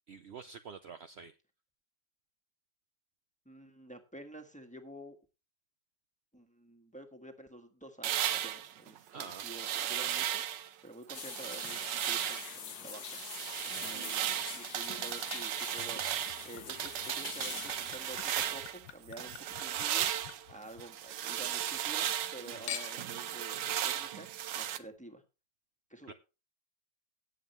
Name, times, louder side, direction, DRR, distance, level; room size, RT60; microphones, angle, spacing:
voice 1, 0.1-1.3 9.1-9.5 13.7-14.0 22.5-22.7 26.1-26.2, right 5 dB, 70° right, 9 dB, 0.6 m, -48 dB
voice 2, 3.4-5.2 6.3-13.2 13.6-16.0 16.4-24.3 24.5-25.2 25.9-26.1, right 1 dB, 5° left, 4 dB, 1.4 m, -50 dB
sound 1, 8.0-10.7 11.1-12.6 12.9-18.8 19.2-24.8, right 11 dB, 85° right, 1.4 m, -36 dB
sound 2, 11.1-18.3, left 7 dB, 60° left, 1.7 m, -45 dB
Chink clink / Liquid, 15.8-21.3 21.6-22.3 22.7-23.2 23.9-24.0, left 11 dB, 90° left, 1.4 m, -48 dB
18.0 x 7.4 x 3.1 m, 0.29 s
omnidirectional pair, 1.9 m